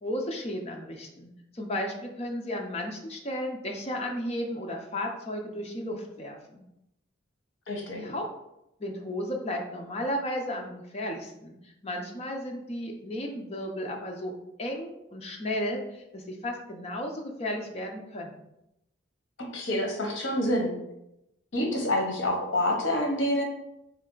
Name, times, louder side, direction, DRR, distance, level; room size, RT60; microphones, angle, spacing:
voice 1, 0.0-6.6 7.9-8.2 8.8-14.3 14.6-18.4, left 1 dB, 30° left, 1 dB, 0.6 m, -34 dB
voice 2, 7.7-8.0 19.5-20.7 21.5-23.4, left 1 dB, 65° left, 1 dB, 0.9 m, -27 dB
3.3 x 3.2 x 3.8 m, 0.85 s
head